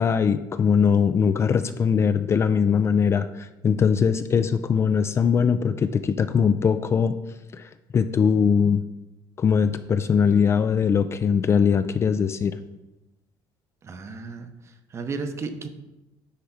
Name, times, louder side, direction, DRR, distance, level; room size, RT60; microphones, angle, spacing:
voice 1, 0.0-7.2 7.5-8.8 9.4-12.6, left 6 dB, 30° left, 11 dB, 0.3 m, -21 dB
voice 2, 13.8-14.5 14.9-15.7, right 4 dB, 30° right, 8 dB, 0.8 m, -33 dB
9.8 x 3.4 x 5.7 m, 0.98 s
cardioid pair, 135°, 9 cm